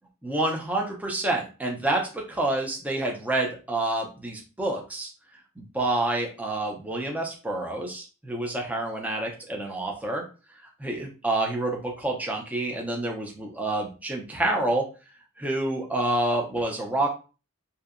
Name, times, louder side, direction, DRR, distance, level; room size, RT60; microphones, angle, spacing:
voice 1, 0.2-5.1 5.6-10.2 10.8-14.9 15.4-17.1, right 2 dB, 5° right, 0 dB, 0.4 m, -28 dB
2.6 x 2.1 x 2.4 m, 0.34 s
head